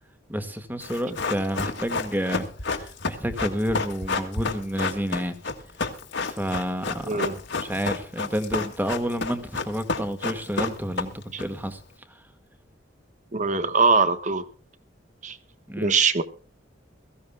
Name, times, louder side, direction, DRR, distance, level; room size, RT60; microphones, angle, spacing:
voice 1, 0.3-5.4 6.2-7.2 7.6-11.8 15.7-16.0, equal, 10° right, 8 dB, 1.8 m, -29 dB
Run, 0.8-11.4 11.7-11.8, left 4 dB, 70° left, 1.9 m, -30 dB
voice 2, 7.1-7.4 11.3-11.4 13.3-14.4 15.2-15.4 15.8-16.2, right 4 dB, 40° right, 11 dB, 1.2 m, -22 dB
22.5 x 15.5 x 2.3 m, 0.42 s
head